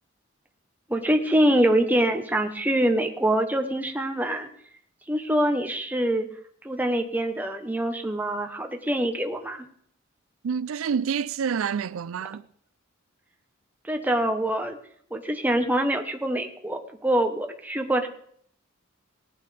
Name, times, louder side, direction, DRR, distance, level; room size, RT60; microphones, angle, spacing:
voice 1, 0.9-4.5 5.1-6.3 6.6-9.6 13.8-14.8 15.1-18.1, right 1 dB, 10° right, 1.0 m, -24 dB
voice 2, 10.4-12.5, right 7 dB, 90° right, 0.4 m, -28 dB
18.0 x 11.5 x 3.4 m
head